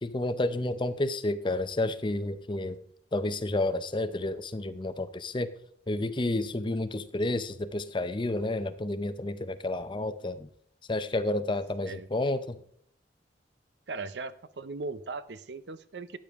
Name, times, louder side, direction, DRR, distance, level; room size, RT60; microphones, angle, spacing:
voice 1, 0.0-2.8 3.1-5.5 5.9-10.5 10.9-12.6, left 2 dB, 25° left, 12 dB, 0.6 m, -30 dB
voice 2, 13.9-16.2, right 3 dB, 65° right, 14 dB, 0.6 m, -38 dB
13.5 x 8.8 x 3.6 m, 0.65 s
head